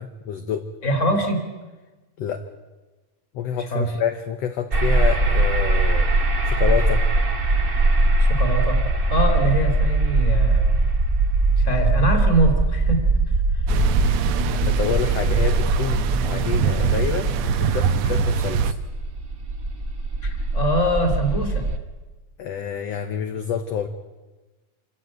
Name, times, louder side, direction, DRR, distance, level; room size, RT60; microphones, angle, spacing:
voice 1, 0.0-0.7 2.2-2.4 3.3-7.0 14.5-18.8 22.4-23.9, left 8 dB, 65° left, 7 dB, 2.0 m, -28 dB
voice 2, 0.8-1.4 3.7-3.9 8.2-8.8 9.1-10.7 11.6-13.0 13.5-13.6 20.2-21.6, right 1 dB, 25° left, 5 dB, 3.2 m, -23 dB
sound 1, 4.7-21.8, right 2 dB, 35° right, 0.8 m, -21 dB
sound 2, 13.7-18.7, right 7 dB, 70° right, 1.9 m, -23 dB
26.5 x 15.0 x 9.2 m, 1.2 s
omnidirectional pair, 3.6 m